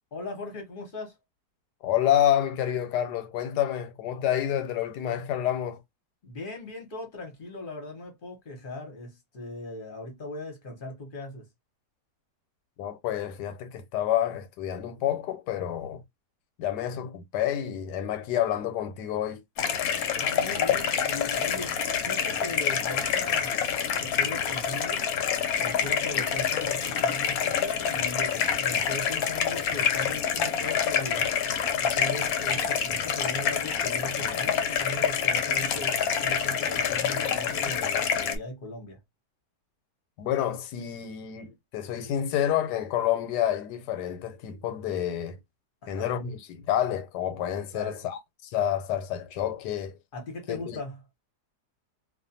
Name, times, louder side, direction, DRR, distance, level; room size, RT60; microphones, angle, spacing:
voice 1, 0.1-1.1 6.2-11.5 20.1-21.7 22.0-23.6 24.0-25.1 25.5-31.4 31.8-39.0 45.8-46.1 47.7-48.1 50.1-51.0, left 2 dB, 40° left, 0.9 m, -38 dB
voice 2, 1.8-5.8 12.8-16.0 16.6-19.4 26.1-26.2 40.2-45.4 45.9-50.0 50.5-50.8, left 11 dB, 90° left, 1.2 m, -28 dB
sound 1, 19.6-38.4, left 7 dB, 70° left, 1.0 m, -27 dB
2.4 x 2.4 x 2.6 m
omnidirectional pair, 1.7 m